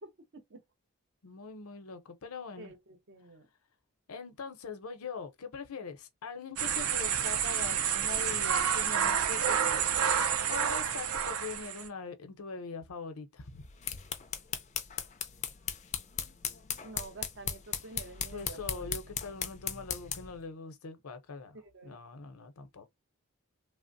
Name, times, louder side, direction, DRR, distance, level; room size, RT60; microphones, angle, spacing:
voice 1, 0.0-0.6 2.6-3.4 16.8-18.9 21.5-22.0, right 3 dB, 55° right, 0.7 m, -48 dB
voice 2, 1.2-2.7 4.1-9.8 10.2-13.7 18.3-21.6 21.8-22.9, left 5 dB, 85° left, 0.7 m, -42 dB
sound 1, 6.6-11.9, right 8 dB, 85° right, 0.5 m, -29 dB
sound 2, 13.6-20.4, left 8 dB, 30° left, 0.4 m, -37 dB
3.2 x 2.0 x 2.6 m
head